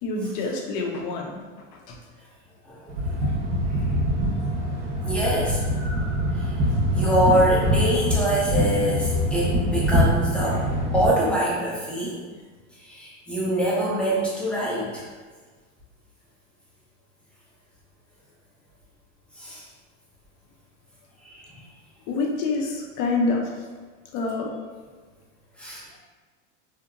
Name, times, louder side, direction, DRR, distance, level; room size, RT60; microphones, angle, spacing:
voice 1, 0.0-2.0 3.2-3.3 22.1-23.7 24.1-24.5, left 3 dB, 55° left, 0 dB, 0.5 m, -27 dB
voice 2, 2.7-3.2 3.7-3.8 5.0-5.6 6.4-6.6 6.9-10.6 10.9-12.1 12.8-15.1 19.4-19.6 21.2-21.6 25.6-25.8, right 1 dB, 5° left, -7 dB, 0.4 m, -25 dB
sound 1, 2.9-11.1, equal, 45° right, 0.6 m, -24 dB
2.8 x 2.0 x 2.4 m, 1.4 s
supercardioid pair, 120°, 39 cm